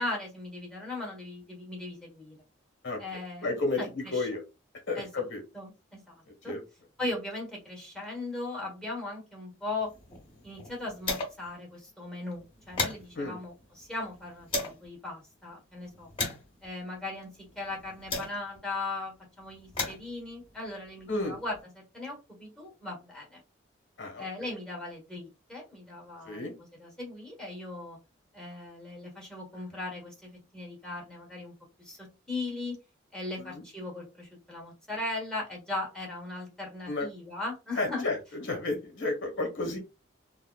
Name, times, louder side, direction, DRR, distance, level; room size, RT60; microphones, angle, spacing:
voice 1, 0.0-2.3 3.0-4.3 4.9-5.2 5.5-6.5 7.0-9.9 10.4-16.1 16.6-23.4 24.2-28.0 28.3-31.5 31.8-32.8 33.1-38.1, left 2 dB, 5° left, 0 dB, 1.2 m, -38 dB
voice 2, 3.4-4.4 4.9-5.4 6.4-6.6 13.1-13.4 21.1-21.3 24.0-24.2 26.2-26.5 33.5-33.6 36.9-37.1 37.8-38.2 38.4-39.8, left 2 dB, 65° left, 3 dB, 1.3 m, -31 dB
sound 1, 9.8-11.6 11.9-12.0 12.3-14.9 15.5-18.7 19.4-21.6, left 3 dB, 25° left, 1.4 m, -38 dB
3.5 x 2.1 x 2.2 m, 0.27 s
head